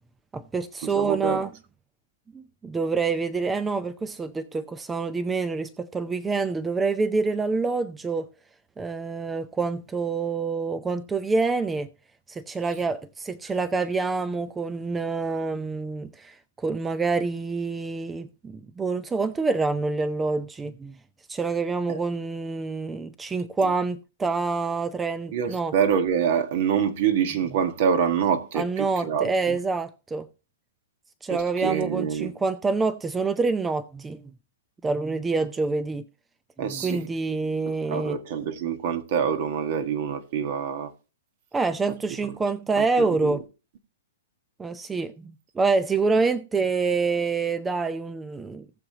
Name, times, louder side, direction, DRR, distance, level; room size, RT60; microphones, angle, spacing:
voice 1, 0.3-1.5 2.3-8.3 8.8-11.9 12.3-21.0 21.3-25.7 28.5-30.3 31.2-34.2 34.8-36.0 36.6-38.2 41.5-43.4 44.6-48.7, right 4 dB, 10° right, 0.5 m, -27 dB
voice 2, 0.9-1.4 21.9-22.0 23.6-23.7 25.3-29.6 31.3-32.3 36.6-37.0 37.7-40.9 42.8-42.9 43.2-43.4, right 7 dB, 55° right, 1.4 m, -26 dB
18.5 x 6.8 x 2.8 m
hypercardioid pair, 125°, 0 cm